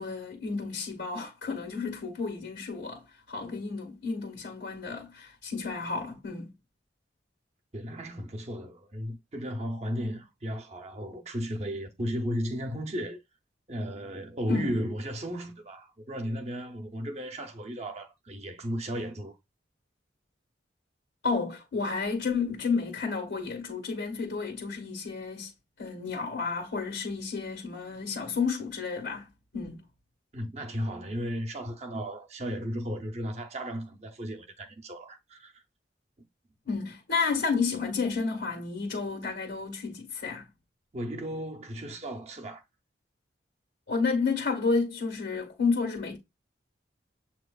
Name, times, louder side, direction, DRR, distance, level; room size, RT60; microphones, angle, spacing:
voice 1, 0.0-6.5 14.5-14.7 21.2-25.5 25.8-29.8 36.6-40.5 43.9-46.2, left 4 dB, 90° left, 1.5 m, -31 dB
voice 2, 7.7-13.2 13.7-19.4 30.3-35.6 40.9-42.6, equal, 35° right, 0.7 m, -35 dB
7.4 x 2.9 x 2.3 m
head